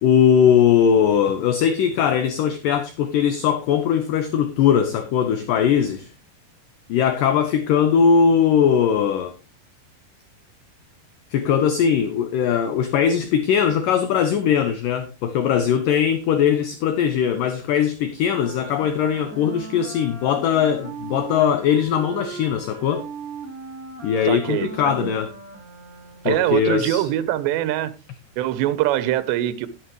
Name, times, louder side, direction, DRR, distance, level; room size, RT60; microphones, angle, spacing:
voice 1, 0.0-6.1 6.9-9.3 11.3-23.1 24.0-25.3 26.3-27.1, left 8 dB, 80° left, 2.0 m, -20 dB
Wind instrument woodwind instrument, 18.2-26.5, right 4 dB, 30° right, 1.6 m, -39 dB
voice 2, 24.3-25.1 26.2-28.0 28.4-29.7, right 13 dB, 90° right, 3.0 m, -23 dB
11.5 x 11.0 x 3.1 m
omnidirectional pair, 5.0 m